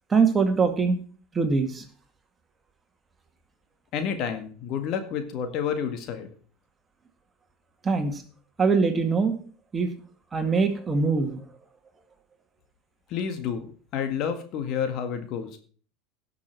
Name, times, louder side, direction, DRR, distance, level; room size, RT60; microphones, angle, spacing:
voice 1, 0.1-1.0 1.3-1.8 7.8-8.2 8.6-9.4 9.7-9.9 10.3-11.4, right 4 dB, 20° right, 6 dB, 2.1 m, -22 dB
voice 2, 3.9-6.3 13.1-13.7 13.9-15.6, left 7 dB, 50° left, 7 dB, 1.8 m, -29 dB
17.5 x 6.1 x 4.6 m, 0.43 s
figure-of-eight pair, 80°, 0 cm